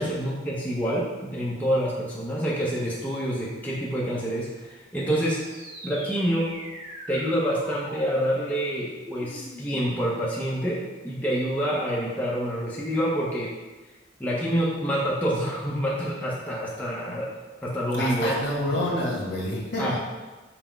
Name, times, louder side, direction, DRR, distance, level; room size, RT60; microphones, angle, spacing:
voice 1, 0.0-5.4 5.8-6.5 7.1-10.8 11.0-13.5 14.2-17.3 17.6-18.3 19.8-20.0, equal, 10° left, -6 dB, 0.6 m, -27 dB
sound 1, 5.3-10.4, equal, 75° right, 1.1 m, -42 dB
voice 2, 17.9-20.0, left 1 dB, 65° left, -4 dB, 1.2 m, -28 dB
5.7 x 2.0 x 4.5 m, 1.2 s
head